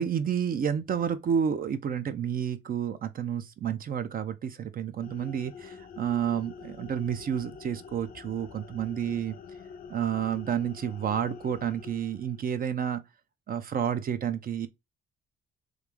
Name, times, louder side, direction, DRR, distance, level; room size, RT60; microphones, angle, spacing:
voice 1, 0.0-9.4 9.9-13.0 13.5-14.7, right 8 dB, 45° right, 0.5 m, -30 dB
sound 1, 5.0-12.5, left 6 dB, 45° left, 0.5 m, -47 dB
3.1 x 2.5 x 3.5 m
cardioid pair, 90°, 20 cm